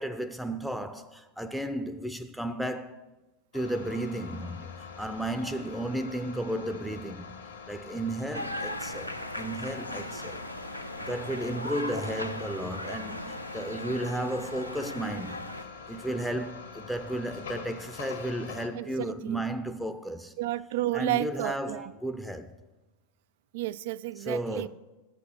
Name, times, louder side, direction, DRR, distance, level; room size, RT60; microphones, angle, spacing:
voice 1, 0.0-3.1 3.5-7.3 7.7-10.4 11.1-15.4 15.9-20.3 20.9-22.5 24.2-24.7, right 1 dB, ahead, 0.6 m, -34 dB
sound 1, 3.5-18.7, left 5 dB, 70° left, 1.4 m, -45 dB
sound 2, 8.3-15.6, left 1 dB, 90° left, 0.7 m, -38 dB
voice 2, 18.8-19.4 20.4-21.9 23.5-24.7, right 16 dB, 55° right, 0.3 m, -32 dB
10.5 x 8.1 x 5.5 m
figure-of-eight pair, 90°, 0 cm